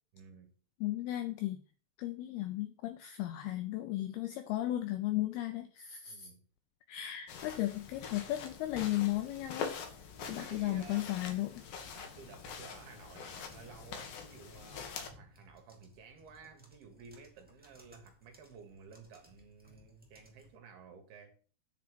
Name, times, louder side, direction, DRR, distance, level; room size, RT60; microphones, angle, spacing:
voice 1, 0.1-0.5 6.1-6.5 9.6-9.7 10.1-11.1 12.0-21.4, right 5 dB, 65° right, 3.7 m, -54 dB
voice 2, 0.8-1.6 2.0-6.3 6.9-9.8 10.3-11.6, left 15 dB, 80° left, 2.4 m, -35 dB
sound 1, 7.3-15.1, left 6 dB, 60° left, 2.7 m, -45 dB
sound 2, 13.2-20.5, left 1 dB, 15° right, 0.3 m, -63 dB
9.6 x 4.5 x 7.7 m
omnidirectional pair, 5.0 m